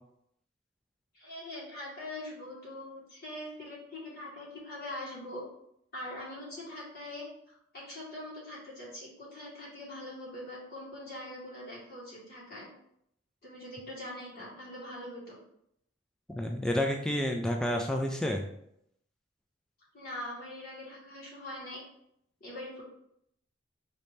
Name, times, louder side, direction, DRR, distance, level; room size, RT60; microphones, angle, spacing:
voice 1, 1.1-5.4 5.9-12.7 13.4-15.4 19.9-21.8 22.4-22.8, left 1 dB, 50° left, -6 dB, 1.6 m, -42 dB
voice 2, 16.3-18.5, left 1 dB, 5° left, 2 dB, 0.3 m, -30 dB
5.1 x 2.8 x 3.5 m, 0.75 s
head